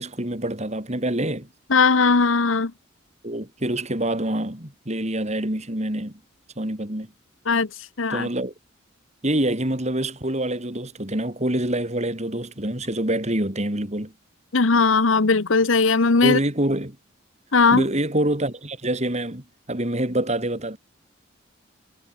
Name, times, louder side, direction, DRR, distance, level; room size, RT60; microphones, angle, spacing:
voice 1, 0.0-1.5 3.2-6.2 6.6-7.1 8.1-8.5 9.2-14.1 16.2-17.0 17.7-20.8, right 1 dB, 35° right, 3.8 m, -26 dB
voice 2, 1.7-2.7 7.5-7.7 8.0-8.3 14.5-16.4 17.5-17.8, left 4 dB, 80° left, 1.1 m, -18 dB
head